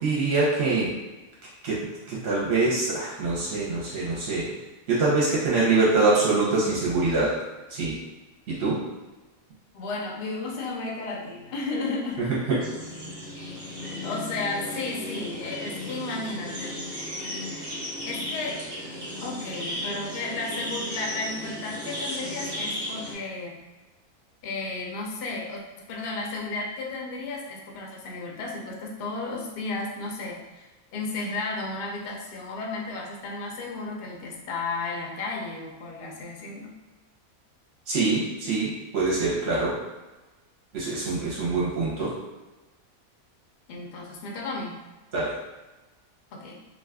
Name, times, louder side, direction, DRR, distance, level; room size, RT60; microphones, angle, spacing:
voice 1, 0.0-0.9 1.6-4.5 4.9-7.4 7.7-8.0 8.5-8.8 12.5-12.6 37.9-39.8 40.7-42.1 45.1-45.4, right 3 dB, 60° right, -6 dB, 0.8 m, -24 dB
voice 2, 9.7-12.3 14.0-16.8 18.1-18.6 19.2-23.7 24.4-36.7 41.2-41.4 43.7-44.8 46.3-46.6, left 3 dB, 60° left, -1 dB, 0.6 m, -33 dB
sound 1, 12.6-23.1, left 1 dB, 25° right, 0.5 m, -35 dB
2.4 x 2.4 x 3.4 m, 1.1 s
omnidirectional pair, 1.5 m